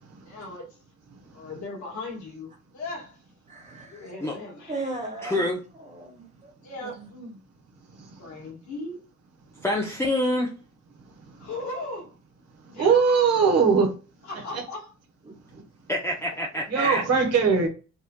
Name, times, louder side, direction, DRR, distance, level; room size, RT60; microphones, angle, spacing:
voice 1, 0.2-0.8 1.3-3.2 3.8-5.2 6.6-7.4 8.2-9.0 11.4-12.1 12.6-13.5 14.3-14.9 16.8-16.9, left 2 dB, 70° left, 1.8 m, -38 dB
voice 2, 3.5-4.1 4.7-6.5 6.8-7.1 15.3-15.6, right 2 dB, 25° right, 1.0 m, -38 dB
voice 3, 5.2-5.6 9.6-10.5 15.9-17.0, left 1 dB, 10° left, 0.7 m, -26 dB
voice 4, 12.8-13.9 14.5-14.6 16.7-17.7, right 5 dB, 55° right, 1.3 m, -20 dB
4.4 x 2.4 x 2.3 m
cardioid pair, 90°, 30 cm